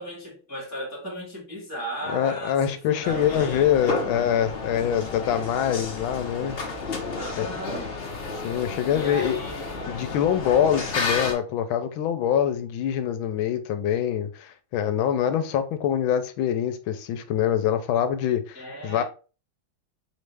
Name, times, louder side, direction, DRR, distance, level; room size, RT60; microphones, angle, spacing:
voice 1, 0.0-4.0 7.1-7.9 8.9-9.9 18.5-19.0, right 1 dB, 10° right, 1.3 m, -36 dB
voice 2, 2.1-6.6 7.4-7.5 8.4-9.4 9.9-19.0, left 9 dB, 85° left, 1.4 m, -24 dB
sound 1, 3.1-11.3, left 3 dB, 55° left, 0.6 m, -32 dB
4.3 x 3.1 x 3.3 m
omnidirectional pair, 2.1 m